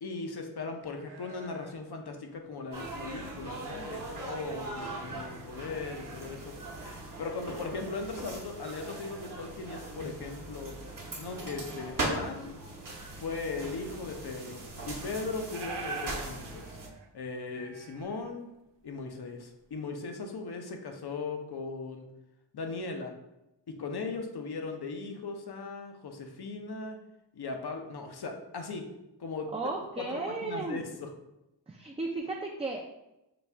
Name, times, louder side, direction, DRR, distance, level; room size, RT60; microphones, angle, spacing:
voice 1, 0.0-6.5 7.2-10.8 11.2-12.6 13.1-16.8 17.1-18.5 18.8-22.1 22.5-23.1 23.7-27.0 27.3-28.9 29.2-29.5 30.0-31.1, left 4 dB, 65° left, 4 dB, 0.7 m, -38 dB
sound 1, 0.8-2.7 3.1-4.2 4.7-4.8 5.4-6.5 6.8-6.9 7.3-10.3 10.6-12.6 13.0-14.1 14.4-14.5 14.7-14.8 15.1-18.9 19.3-19.8, right 4 dB, 90° right, 0.6 m, -48 dB
sound 2, 2.7-16.9, right 2 dB, 50° right, 0.9 m, -40 dB
voice 2, 29.5-30.8 31.7-32.8, right 3 dB, 15° right, -1 dB, 0.4 m, -34 dB
4.1 x 2.3 x 3.3 m, 0.92 s
wide cardioid pair, 50°, 42 cm